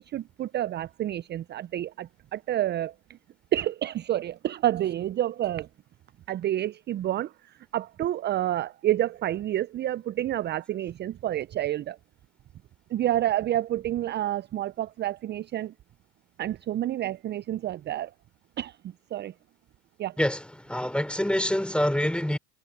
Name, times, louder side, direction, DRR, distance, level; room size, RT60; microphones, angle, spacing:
voice 1, 0.0-3.2 3.5-5.7 6.3-12.0 12.9-15.7 16.4-18.1 18.6-19.3 20.0-20.2, right 12 dB, 25° right, 0.5 m, -29 dB
voice 2, 20.2-22.4, left 1 dB, ahead, 3.5 m, -26 dB
hypercardioid pair, 85°, 45 cm